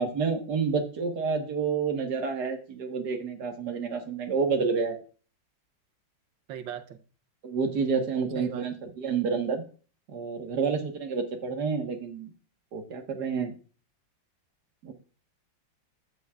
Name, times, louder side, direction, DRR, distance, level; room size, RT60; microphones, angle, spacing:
voice 1, 0.0-5.0 7.4-9.6 10.1-12.3 12.7-13.5 14.8-14.9, right 5 dB, 60° right, 1.9 m, -29 dB
voice 2, 6.5-7.0 8.4-8.6, right 9 dB, 75° right, 1.4 m, -38 dB
14.0 x 5.3 x 2.3 m
omnidirectional pair, 2.1 m